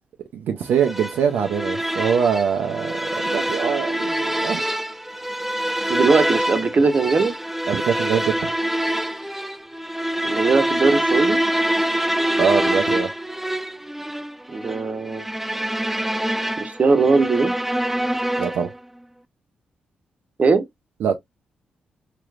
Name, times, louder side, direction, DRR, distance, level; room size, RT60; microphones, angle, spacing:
voice 1, 0.3-4.6 7.7-8.5 12.4-13.1 18.4-18.7 21.0-21.2, right 7 dB, 75° right, 0.5 m, -23 dB
sound 1, 0.8-18.8, right 1 dB, 5° right, 0.3 m, -25 dB
voice 2, 5.9-7.3 10.2-11.4 14.5-15.3 16.6-17.5 20.4-20.6, right 4 dB, 45° right, 0.8 m, -19 dB
3.2 x 2.9 x 2.3 m
supercardioid pair, 45°, 3 cm